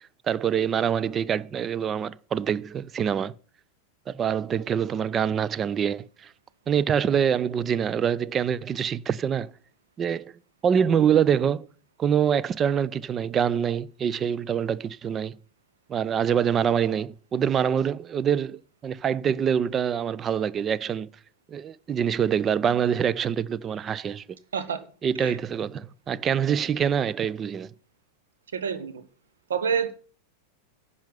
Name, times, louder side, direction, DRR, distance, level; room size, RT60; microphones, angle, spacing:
voice 1, 0.3-3.3 4.1-6.3 6.7-9.5 10.0-10.3 10.6-11.7 12.0-15.4 15.9-21.1 21.5-24.2 25.0-27.7, right 8 dB, 25° right, 0.5 m, -25 dB
voice 2, 28.5-29.0 29.5-29.9, right 7 dB, 65° right, 1.3 m, -27 dB
10.5 x 5.6 x 8.0 m
figure-of-eight pair, 90°, 0 cm